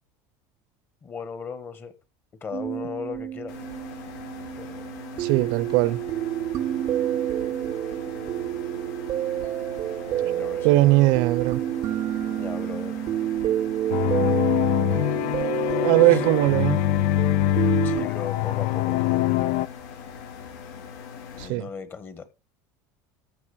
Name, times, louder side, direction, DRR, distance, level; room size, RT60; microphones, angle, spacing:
voice 1, 1.0-1.9 2.4-3.5 4.5-4.9 10.2-10.9 12.3-13.1 16.1-16.2 17.8-19.2 21.3-22.2, left 6 dB, 25° left, 1.4 m, -37 dB
sound 1, 2.5-18.1, right 12 dB, 35° right, 0.5 m, -29 dB
sound 2, 3.5-21.5, left 6 dB, 90° left, 5.6 m, -42 dB
voice 2, 5.2-6.0 10.6-11.6 15.8-16.8 21.4-21.7, right 18 dB, 70° right, 0.8 m, -20 dB
sound 3, 13.9-19.7, left 15 dB, 70° left, 0.6 m, -24 dB
14.0 x 6.2 x 4.8 m
cardioid pair, 145°, 9 cm